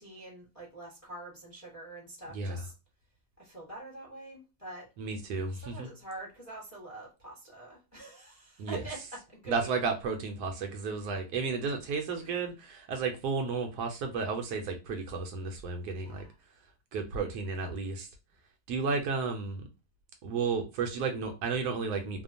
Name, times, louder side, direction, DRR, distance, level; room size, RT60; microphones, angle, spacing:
voice 1, 0.0-2.7 3.4-4.9 5.6-9.0 9.3-9.7 12.2-12.3 16.0-16.3, right 2 dB, 15° left, 0.8 m, -45 dB
voice 2, 5.0-5.9 8.6-8.8 9.5-16.3 16.9-18.1 18.7-19.6 20.2-22.2, right 4 dB, 75° right, 1.1 m, -33 dB
2.9 x 2.1 x 2.5 m
omnidirectional pair, 1.8 m